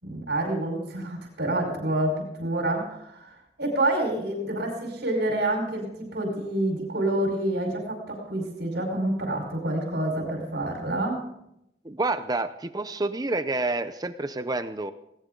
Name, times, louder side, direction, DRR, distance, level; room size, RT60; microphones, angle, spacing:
voice 1, 0.0-11.3, right 1 dB, 70° right, 0 dB, 4.8 m, -28 dB
voice 2, 11.8-14.9, right 2 dB, 20° right, 10 dB, 0.6 m, -28 dB
19.5 x 18.0 x 3.9 m, 0.80 s
head